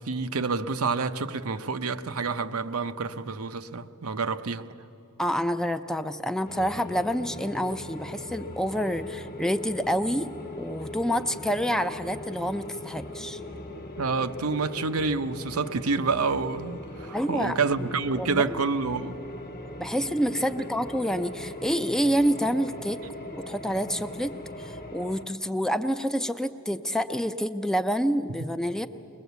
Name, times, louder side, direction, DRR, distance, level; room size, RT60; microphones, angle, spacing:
voice 1, 0.0-4.7 14.0-19.1, right 4 dB, 85° right, 0.8 m, -28 dB
voice 2, 5.2-10.3 10.6-13.4 17.1-18.6 19.8-23.0 23.4-28.9, equal, 5° left, 0.4 m, -28 dB
sound 1, 6.5-25.3, left 1 dB, 40° left, 1.2 m, -39 dB
22.0 x 20.5 x 8.1 m
head